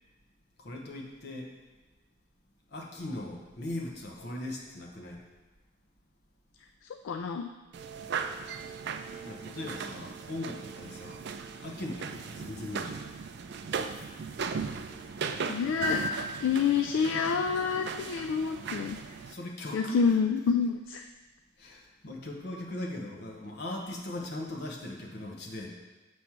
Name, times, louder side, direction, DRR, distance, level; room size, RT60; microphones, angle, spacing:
voice 1, 0.6-1.5 2.7-5.2 9.2-11.2 11.6-13.0 19.2-20.2 21.6-25.7, left 1 dB, 55° left, 0 dB, 1.1 m, -39 dB
voice 2, 7.0-7.5 15.5-16.0 16.4-19.0 19.7-21.0, left 6 dB, 70° left, 6 dB, 0.3 m, -28 dB
sound 1, 7.7-19.3, right 4 dB, 60° right, 0.4 m, -37 dB
7.1 x 3.2 x 5.9 m, 1.2 s
head